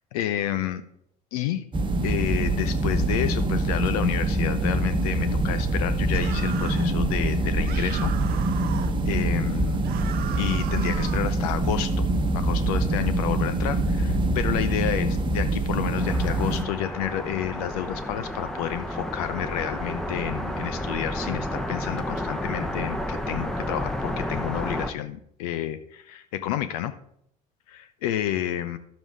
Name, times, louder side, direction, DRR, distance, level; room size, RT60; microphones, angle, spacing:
voice 1, 0.1-0.8 1.3-1.7 2.0-8.5 9.1-9.8 10.4-11.9 12.3-26.9 27.7-28.8, left 11 dB, 70° left, 12 dB, 0.6 m, -30 dB
sound 1, 1.7-16.6, right 2 dB, 25° right, 1.0 m, -24 dB
sound 2, 6.1-6.9 7.6-9.0 9.8-11.3, right 10 dB, 50° right, 0.7 m, -38 dB
sound 3, 16.0-24.9, left 1 dB, ahead, 0.8 m, -31 dB
11.5 x 7.1 x 3.5 m, 0.70 s
hypercardioid pair, 70°, 20 cm